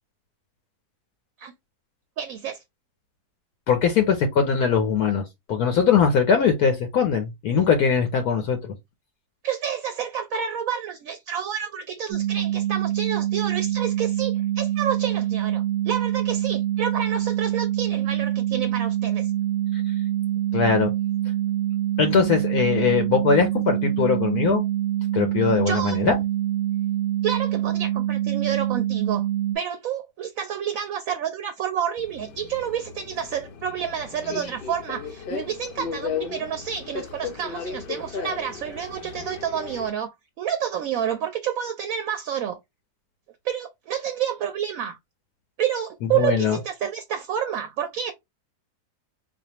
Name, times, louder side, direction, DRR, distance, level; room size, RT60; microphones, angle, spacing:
voice 1, 2.2-2.6 9.4-19.3 25.5-26.0 27.2-29.3 29.5-42.6 43.4-45.0 45.6-48.1, right 9 dB, 70° right, 0.9 m, -29 dB
voice 2, 3.7-5.2 5.5-8.6 20.5-20.9 22.0-24.6 25.1-26.2 46.0-46.6, left 6 dB, 70° left, 1.2 m, -21 dB
sound 1, 12.1-29.6, right 12 dB, 10° right, 1.1 m, -25 dB
Subway metro underground, 32.0-39.9, left 6 dB, 85° left, 0.4 m, -35 dB
4.3 x 2.6 x 2.8 m
omnidirectional pair, 1.7 m